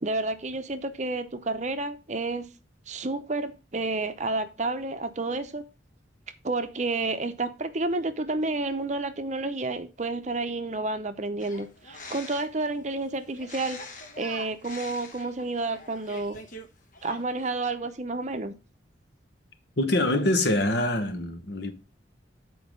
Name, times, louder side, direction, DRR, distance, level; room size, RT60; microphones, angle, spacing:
voice 1, 0.0-2.5 2.9-5.6 6.4-13.8 14.2-16.4 17.0-18.5, right 2 dB, 40° right, 0.7 m, -30 dB
sound 1, 11.4-12.6 13.4-16.7 16.9-17.5, left 2 dB, 45° left, 1.0 m, -44 dB
voice 2, 19.8-21.7, left 1 dB, 60° left, 1.2 m, -24 dB
8.2 x 4.7 x 5.1 m
head